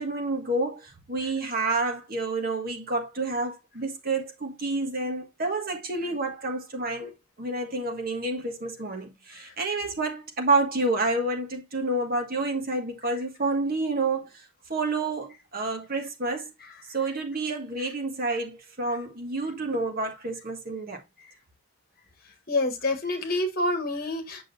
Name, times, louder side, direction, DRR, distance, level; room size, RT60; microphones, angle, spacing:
voice 1, 0.0-7.1 7.4-16.5 16.9-21.0, right 2 dB, 40° right, 1.5 m, -29 dB
voice 2, 22.5-24.4, left 2 dB, 45° left, 1.5 m, -27 dB
7.4 x 6.3 x 2.6 m
head